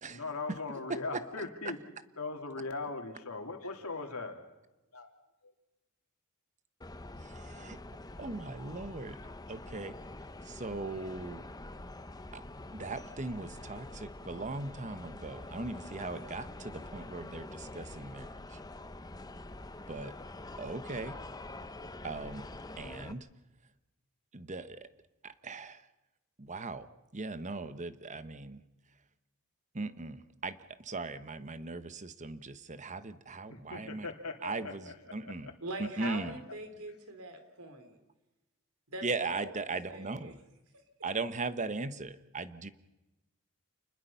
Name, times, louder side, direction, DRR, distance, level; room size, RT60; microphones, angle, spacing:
voice 1, 0.1-1.8 2.2-4.3 4.9-5.1 33.5-34.7, left 3 dB, 80° left, 4 dB, 3.1 m, -39 dB
voice 2, 0.9-1.4 7.2-7.8 8.2-9.2 9.5-10.0 10.4-11.4 12.3-12.4 12.7-18.6 19.9-20.1 20.6-21.2 22.0-22.5 22.8-23.3 24.3-24.9 25.2-25.8 26.4-28.6 29.7-34.1 34.4-35.5 35.8-36.4 39.0-40.4 41.0-42.7, right 3 dB, 35° right, 12 dB, 1.1 m, -39 dB
sound 1, 6.8-23.1, left 2 dB, 15° left, 0.8 m, -46 dB
voice 3, 35.6-38.0 38.9-40.4 40.7-40.8, right 2 dB, 80° right, 7 dB, 3.9 m, -43 dB
29.0 x 21.0 x 5.7 m, 1.0 s
head